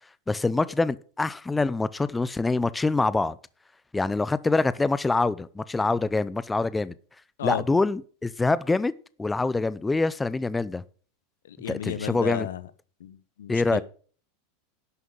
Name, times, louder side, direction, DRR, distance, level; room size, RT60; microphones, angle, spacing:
voice 1, 0.3-3.4 3.9-6.9 7.4-8.9 9.2-10.8 11.7-12.5 13.5-13.8, left 3 dB, 10° left, 0.6 m, -25 dB
voice 2, 11.5-12.6 13.0-13.8, left 10 dB, 85° left, 1.0 m, -32 dB
11.0 x 5.8 x 8.0 m
hypercardioid pair, 115°, 0 cm